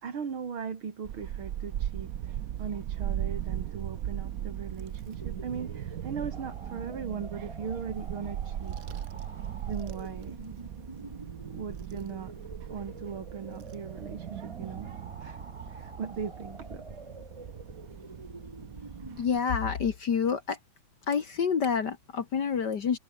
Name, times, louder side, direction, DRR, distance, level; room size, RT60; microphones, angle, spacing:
voice 1, 0.0-2.3 2.6-8.8 9.7-10.4 11.5-12.3 12.7-14.9 15.2-15.4 15.7-16.8, right 6 dB, 85° right, 3.3 m, -38 dB
Child speech kid speaking / Wind, 1.0-19.4, right 11 dB, 60° right, 1.0 m, -38 dB
sound 1, 5.2-19.2, right 2 dB, 15° right, 1.7 m, -46 dB
voice 2, 19.2-20.6 21.1-23.0, left 6 dB, 55° left, 2.1 m, -28 dB
omnidirectional pair, 2.2 m